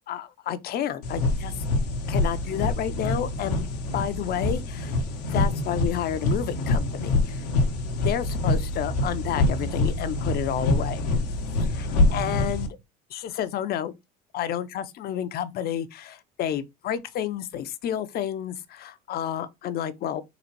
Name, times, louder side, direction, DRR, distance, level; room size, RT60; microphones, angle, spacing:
voice 1, 0.1-1.5 2.1-5.0 5.3-7.5 8.0-11.0 11.6-12.8 13.1-13.9 14.3-20.2, left 10 dB, 50° left, 0.6 m, -30 dB
sound 1, 1.0-12.7, left 2 dB, 85° left, 1.0 m, -26 dB
3.9 x 2.4 x 4.5 m
hypercardioid pair, 75°, 20 cm